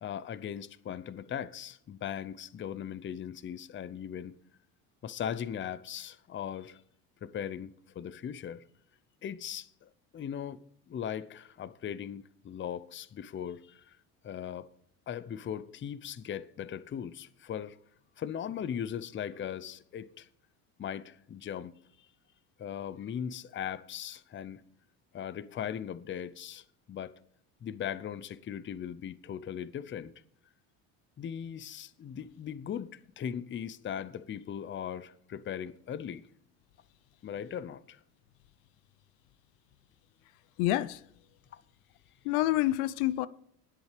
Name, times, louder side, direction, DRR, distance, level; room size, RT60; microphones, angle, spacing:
voice 1, 0.0-4.4 5.0-6.8 7.2-8.6 9.2-10.6 10.9-14.0 14.2-14.7 15.1-17.8 18.2-20.3 20.8-21.7 22.6-24.6 25.1-27.2 27.6-30.1 31.2-36.3 37.2-38.0 41.5-41.6, left 9 dB, 25° left, 0.6 m, -39 dB
voice 2, 40.6-41.0 42.2-43.3, left 16 dB, 70° left, 0.7 m, -27 dB
20.0 x 8.0 x 3.3 m
hypercardioid pair, 75°, 44 cm